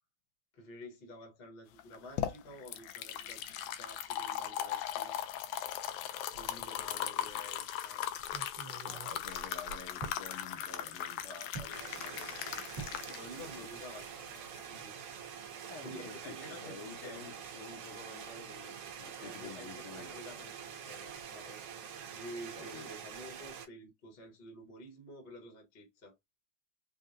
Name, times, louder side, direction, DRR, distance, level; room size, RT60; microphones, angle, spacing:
voice 1, 0.5-5.2 6.3-8.1 13.1-14.3 14.7-15.0 15.8-17.3 19.2-21.6 22.1-26.1, equal, 35° left, 0.9 m, -50 dB
sound 1, 1.8-14.8, left 11 dB, 85° left, 2.1 m, -39 dB
sound 2, 6.3-6.9 7.3-7.4 8.2-10.2 11.5-11.8 12.8-13.0 13.4-13.7 13.9-14.1, right 4 dB, 40° right, 1.4 m, -47 dB
voice 2, 8.8-13.1 13.3-13.7 15.7-20.2 22.5-22.9, left 4 dB, 70° left, 1.4 m, -50 dB
sound 3, 11.7-23.7, right 7 dB, 65° right, 1.6 m, -46 dB
5.2 x 2.2 x 2.6 m
omnidirectional pair, 3.4 m